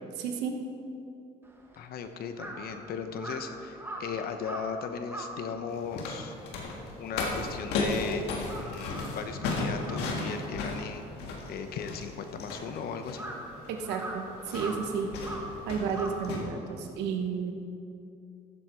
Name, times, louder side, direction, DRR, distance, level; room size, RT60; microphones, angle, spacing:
voice 1, 0.2-0.5 13.7-15.1 15.7-17.5, right 6 dB, 85° right, 4 dB, 1.2 m, -32 dB
Crow, 1.4-8.0 8.3-16.9, right 1 dB, 15° right, 1.6 m, -43 dB
voice 2, 1.8-6.4 7.0-8.3 8.6-11.1 11.5-13.2, left 6 dB, 65° left, 8 dB, 1.0 m, -37 dB
sound 1, 5.7-16.4, left 3 dB, 90° left, 1.7 m, -35 dB
14.5 x 7.8 x 4.5 m, 2.7 s
cardioid pair, 110°, 17 cm